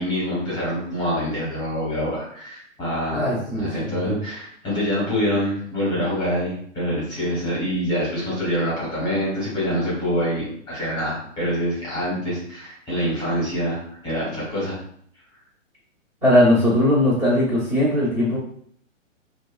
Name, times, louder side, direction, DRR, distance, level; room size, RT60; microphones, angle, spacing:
voice 1, 0.0-14.8, equal, 10° left, -7 dB, 0.9 m, -25 dB
voice 2, 3.1-4.2 16.2-18.4, left 1 dB, 15° right, -10 dB, 0.7 m, -19 dB
2.7 x 2.2 x 2.2 m, 0.64 s
hypercardioid pair, 145°, 39 cm